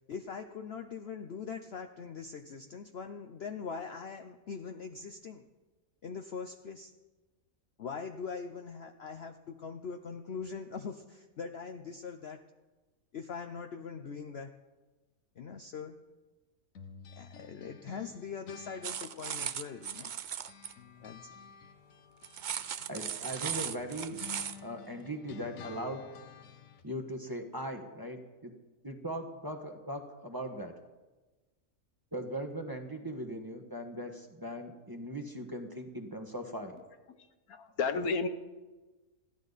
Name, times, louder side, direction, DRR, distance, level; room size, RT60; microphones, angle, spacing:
voice 1, 0.1-5.4 6.0-6.9 7.8-12.4 13.1-14.5 15.4-16.0 17.1-20.1 21.0-21.4, left 5 dB, 55° left, 5 dB, 0.9 m, -42 dB
sound 1, 16.7-20.2 20.5-26.9, left 6 dB, 70° left, 1.4 m, -51 dB
sound 2, 18.8-20.7 22.2-24.6, right 8 dB, 60° right, 0.5 m, -37 dB
voice 2, 22.9-24.2 24.6-26.0 26.8-28.5 28.8-30.7 32.1-36.7, equal, 15° right, 3 dB, 1.4 m, -39 dB
voice 3, 37.5-38.3, left 4 dB, 85° left, 8 dB, 1.5 m, -31 dB
21.5 x 15.0 x 4.1 m, 1.2 s
omnidirectional pair, 1.5 m